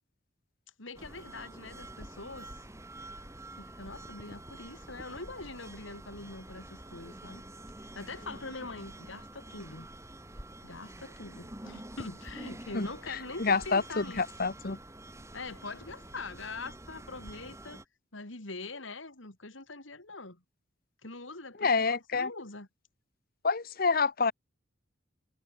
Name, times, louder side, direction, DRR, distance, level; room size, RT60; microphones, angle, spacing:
voice 1, 0.8-2.7 3.6-7.4 7.8-9.9 10.6-14.3 15.3-17.8 18.1-20.4 21.0-22.7, left 3 dB, 80° left, 3.7 m, -43 dB
sound 1, 0.9-17.8, right 1 dB, 15° right, 4.7 m, -47 dB
voice 2, 12.7-14.8 21.6-22.3 23.4-24.3, left 4 dB, 50° left, 1.0 m, -28 dB
head